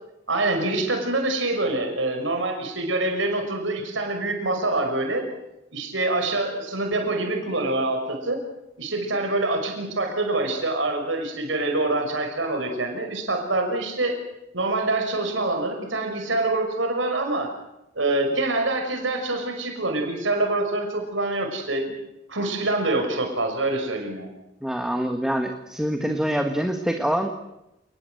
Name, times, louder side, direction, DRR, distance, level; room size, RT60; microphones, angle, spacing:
voice 1, 0.3-5.3 5.7-8.4 8.8-14.2 14.5-17.5 18.0-22.0 22.3-24.3, right 2 dB, 80° right, 4 dB, 5.8 m, -25 dB
voice 2, 24.6-27.3, equal, 5° right, 4 dB, 1.7 m, -25 dB
29.5 x 20.5 x 8.0 m, 0.90 s
head